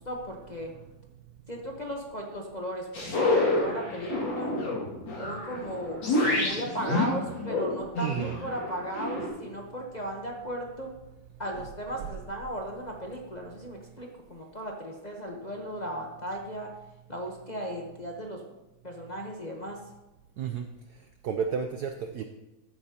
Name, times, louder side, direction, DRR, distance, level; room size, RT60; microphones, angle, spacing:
voice 1, 0.1-0.7 1.5-4.5 5.2-6.0 6.3-10.9 11.4-16.7 17.1-18.4 18.8-19.8, right 1 dB, 35° left, -1 dB, 0.6 m, -36 dB
sound 1, 2.9-9.3, left 2 dB, 60° left, 2.9 m, -28 dB
voice 2, 8.0-8.4 11.5-11.6 20.4-20.7 21.2-22.2, right 7 dB, 80° right, 6 dB, 0.9 m, -31 dB
13.5 x 8.7 x 2.9 m, 1.0 s
omnidirectional pair, 2.3 m